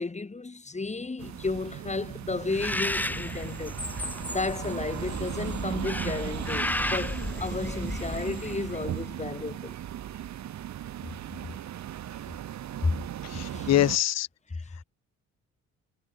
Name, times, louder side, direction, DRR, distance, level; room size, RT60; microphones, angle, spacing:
voice 1, 0.0-3.8 4.3-9.8 11.5-11.6 12.8-13.0 13.3-14.0 14.5-14.8, left 3 dB, 20° left, 5.4 m, -33 dB
sound 1, 1.2-14.0, right 11 dB, 65° right, 2.4 m, -37 dB
sound 2, 2.1-8.9, right 1 dB, 10° right, 6.0 m, -54 dB
Bird, 2.5-8.9, left 1 dB, 5° left, 0.8 m, -33 dB
voice 2, 13.3-14.3, left 14 dB, 60° left, 0.6 m, -24 dB
cardioid pair, 90°, 30 cm